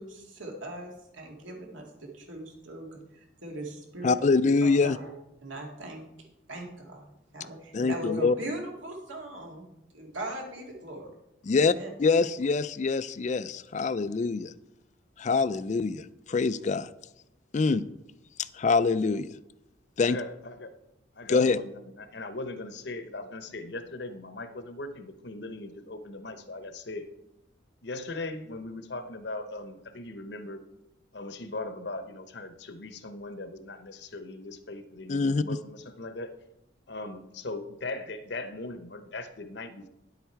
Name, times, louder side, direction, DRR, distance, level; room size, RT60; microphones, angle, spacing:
voice 1, 0.0-4.3 4.6-5.1 5.4-6.0 6.5-7.0 7.3-9.7 9.9-11.1 11.5-11.9, right 1 dB, 85° right, 0 dB, 2.3 m, -39 dB
voice 2, 4.0-5.0 7.7-8.3 11.5-14.5 15.2-16.9 17.5-17.8 18.5-19.3 20.0-20.2 21.3-21.6 35.1-35.4, left 4 dB, 40° left, 15 dB, 0.3 m, -25 dB
voice 3, 20.0-20.7 21.2-27.1 27.8-30.6 31.1-36.3 36.9-39.9, left 2 dB, 60° left, 9 dB, 0.9 m, -39 dB
10.0 x 8.1 x 4.5 m, 0.89 s
head